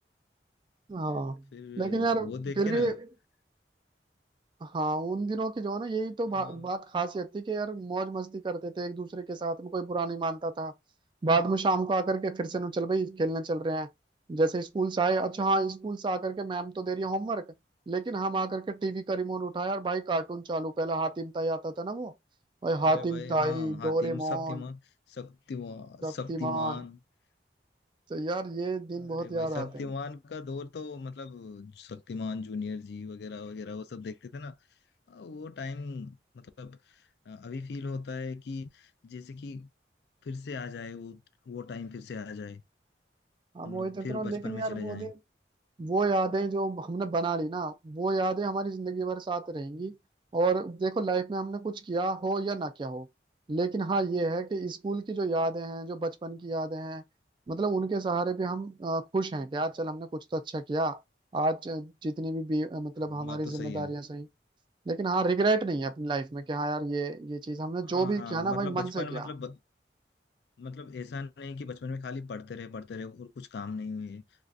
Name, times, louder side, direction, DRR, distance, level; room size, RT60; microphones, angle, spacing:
voice 1, 0.9-1.4 1.8-3.0 4.6-10.7 11.2-13.9 14.3-17.5 17.9-22.1 22.6-24.6 26.0-26.8 28.1-29.7 43.5-45.1 45.8-50.0 50.3-53.1 53.5-57.0 57.5-61.0 61.3-64.3 64.9-69.2, right 3 dB, 25° right, 0.3 m, -30 dB
voice 2, 1.5-2.9 6.3-6.7 22.8-24.8 25.1-27.0 29.0-34.6 35.1-39.7 40.2-42.6 43.6-45.1 63.1-63.9 67.8-69.6 70.6-74.2, left 4 dB, 65° left, 0.4 m, -39 dB
2.6 x 2.4 x 3.4 m
head